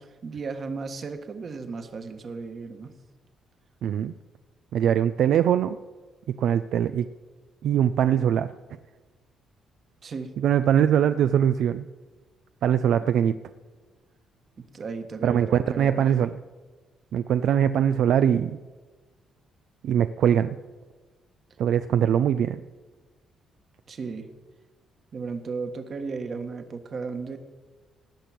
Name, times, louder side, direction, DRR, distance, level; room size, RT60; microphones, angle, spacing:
voice 1, 0.2-2.9 10.0-10.3 13.0-13.1 14.6-16.0 23.9-24.3 25.1-27.4, right 4 dB, 50° right, 7 dB, 1.6 m, -35 dB
voice 2, 3.8-4.1 4.7-5.8 6.4-7.1 7.6-8.5 10.4-11.9 12.6-13.4 15.2-16.4 17.1-18.6 19.8-20.6 21.6-22.6, right 9 dB, 75° right, 11 dB, 0.4 m, -22 dB
18.0 x 6.0 x 8.4 m, 1.3 s
cardioid pair, 90°, 0 cm